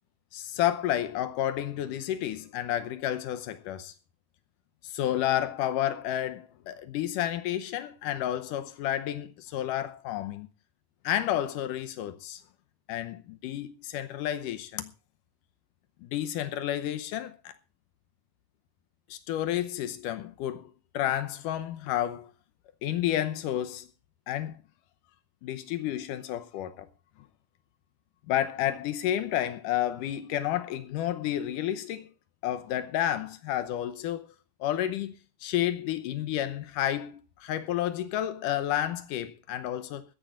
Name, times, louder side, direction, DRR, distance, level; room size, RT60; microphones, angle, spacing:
voice 1, 0.3-3.9 4.8-10.5 11.0-12.4 12.9-14.9 16.0-17.5 19.1-22.3 22.8-23.9 24.3-24.6 25.4-26.9 28.3-32.1 32.4-34.3 34.6-35.1 35.4-40.0, left 12 dB, 85° left, 1.9 m, -31 dB
20.5 x 14.5 x 2.5 m
omnidirectional pair, 4.9 m